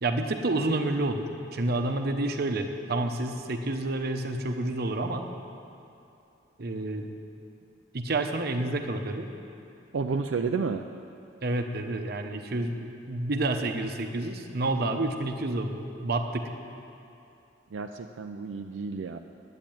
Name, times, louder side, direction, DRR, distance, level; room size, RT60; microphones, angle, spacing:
voice 1, 0.0-5.3 6.6-7.1 7.9-9.3 11.4-16.5, right 2 dB, 55° right, 6 dB, 0.9 m, -29 dB
voice 2, 9.9-10.8 17.7-19.2, right 4 dB, 85° right, 5 dB, 0.5 m, -31 dB
10.5 x 8.9 x 9.0 m, 2.7 s
head